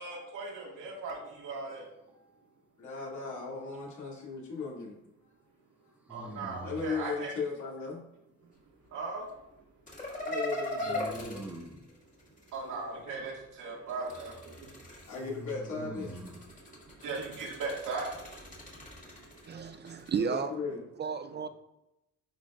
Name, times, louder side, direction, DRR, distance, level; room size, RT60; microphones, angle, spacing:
voice 1, 0.0-1.9 6.1-7.3 8.9-9.3 12.5-14.7 16.5-20.0, right 3 dB, 80° right, 2.1 m, -39 dB
voice 2, 2.8-5.0 6.4-8.0 10.2-11.4 15.1-16.2 20.2-20.8, left 4 dB, 75° left, 2.4 m, -37 dB
sound 1, 3.3-4.0 6.1-7.0 10.8-11.8 15.2-16.4, right 1 dB, 5° right, 1.0 m, -44 dB
sound 2, 9.9-12.6 13.9-15.4 16.0-20.2, left 1 dB, 25° left, 2.0 m, -40 dB
voice 3, 19.5-20.5 21.0-21.5, right 6 dB, 35° right, 0.4 m, -33 dB
10.0 x 4.3 x 2.5 m
cardioid pair, 90°, 30 cm